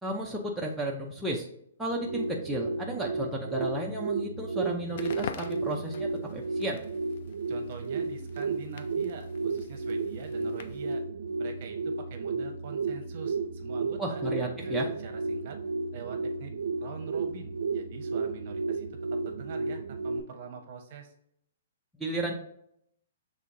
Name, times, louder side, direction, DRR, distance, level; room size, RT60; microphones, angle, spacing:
voice 1, 0.0-1.5 1.8-6.8 14.0-14.9 22.0-22.3, right 1 dB, 5° right, -3 dB, 0.5 m, -33 dB
sound 1, 1.8-20.2, right 4 dB, 80° right, 0.4 m, -33 dB
Crackle, 4.8-11.0, left 7 dB, 55° left, 0.4 m, -45 dB
voice 2, 7.5-11.0 11.4-15.6 15.9-16.5 16.8-18.9 19.2-21.1, right 6 dB, 50° right, 5 dB, 1.0 m, -44 dB
5.6 x 3.5 x 2.6 m, 0.72 s
hypercardioid pair, 145°, 0 cm